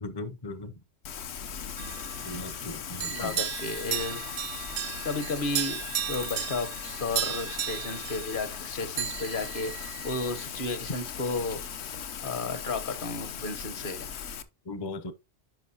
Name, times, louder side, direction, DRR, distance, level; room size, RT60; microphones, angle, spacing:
voice 1, 0.0-0.7 2.2-3.4 14.7-15.1, left 2 dB, 30° left, 0.5 m, -38 dB
Rain, 1.0-14.4, left 7 dB, 75° left, 1.0 m, -38 dB
sound 1, 1.8-2.6 3.0-8.7 9.0-10.4, right 11 dB, 80° right, 0.9 m, -35 dB
voice 2, 3.1-4.2 4.6-4.7 5.0-5.8 6.1-11.6 12.2-14.1, left 3 dB, 55° left, 1.1 m, -33 dB
10.5 x 5.3 x 2.8 m
omnidirectional pair, 1.1 m